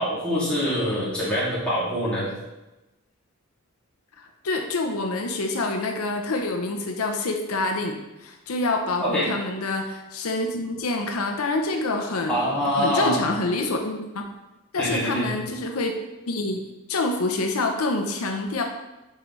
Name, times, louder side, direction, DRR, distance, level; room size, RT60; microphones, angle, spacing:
voice 1, 0.0-2.3 9.0-9.3 12.3-13.2 14.8-15.3, equal, 5° left, -10 dB, 2.3 m, -24 dB
voice 2, 4.4-12.5 12.8-14.2 14.7-15.9 16.3-16.6 16.9-18.6, left 2 dB, 80° left, 3 dB, 0.7 m, -26 dB
7.6 x 4.9 x 3.1 m, 1.0 s
head